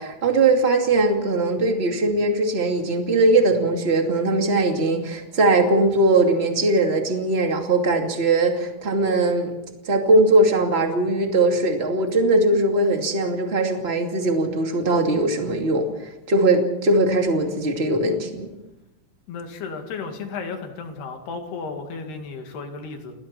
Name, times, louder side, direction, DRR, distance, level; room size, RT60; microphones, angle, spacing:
voice 1, 0.0-9.5 9.8-15.9 16.3-18.5, right 2 dB, 25° right, 3 dB, 1.5 m, -20 dB
voice 2, 19.3-23.1, left 4 dB, 65° left, 4 dB, 4.1 m, -34 dB
30.0 x 20.0 x 4.4 m, 0.96 s
omnidirectional pair, 5.3 m